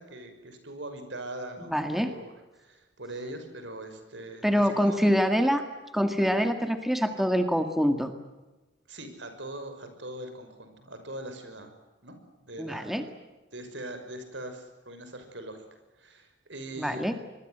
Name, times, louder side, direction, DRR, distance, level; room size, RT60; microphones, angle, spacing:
voice 1, 0.0-1.7 2.0-5.1 8.9-11.7 12.0-12.1 12.4-13.1 13.5-15.6 16.0-17.1, right 1 dB, 80° right, 8 dB, 5.9 m, -41 dB
voice 2, 1.7-2.1 4.4-5.6 5.9-8.1 12.6-13.0 16.8-17.1, equal, ahead, 7 dB, 1.9 m, -25 dB
26.0 x 21.5 x 7.9 m, 1.1 s
head